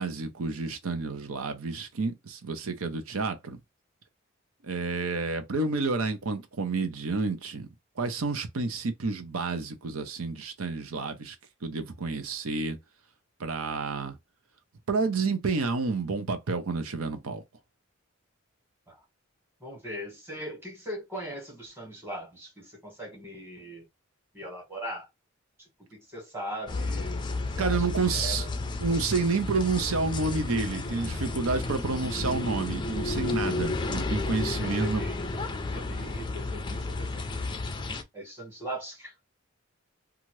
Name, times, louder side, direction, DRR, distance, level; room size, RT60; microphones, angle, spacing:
voice 1, 0.0-3.6 4.6-7.7 8.0-11.4 11.6-12.8 13.4-14.2 14.9-17.4 27.6-28.5 28.8-35.0, right 4 dB, 85° right, 0.7 m, -29 dB
voice 2, 19.6-23.8 24.3-25.1 25.6-27.2 27.5-28.5 34.6-35.3 35.7-37.4 38.1-39.1, equal, 10° right, 1.5 m, -40 dB
sound 1, 26.7-38.0, left 3 dB, 20° left, 0.4 m, -32 dB
2.8 x 2.4 x 3.1 m
head